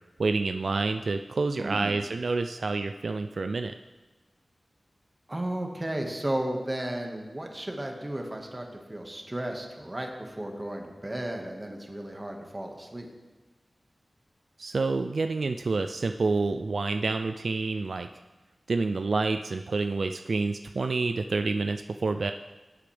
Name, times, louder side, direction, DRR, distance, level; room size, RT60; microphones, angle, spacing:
voice 1, 0.2-3.7 14.6-18.1 18.7-22.3, right 3 dB, 70° right, 7 dB, 0.3 m, -28 dB
voice 2, 1.5-2.0 5.3-13.1, right 1 dB, 25° right, 2 dB, 1.6 m, -34 dB
17.5 x 8.4 x 3.4 m, 1.2 s
wide cardioid pair, 75°, 0 cm